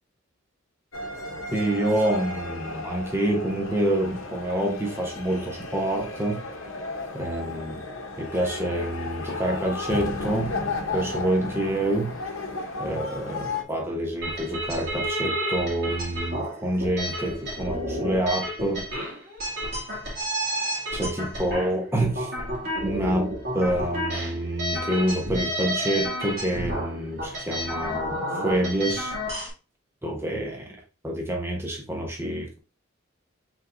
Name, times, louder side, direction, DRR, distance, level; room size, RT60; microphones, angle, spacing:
sound 1, 0.9-13.6, left 3 dB, 90° left, 0.8 m, -34 dB
voice 1, 1.5-6.4 7.1-7.8 8.2-10.6 10.9-12.1 12.8-18.8 20.9-22.3 22.8-23.3 23.5-29.1 30.0-30.8 31.0-32.6, right 1 dB, 10° right, 0.9 m, -27 dB
sound 2, 14.2-29.5, equal, 50° right, 2.2 m, -31 dB
5.4 x 3.7 x 2.5 m
head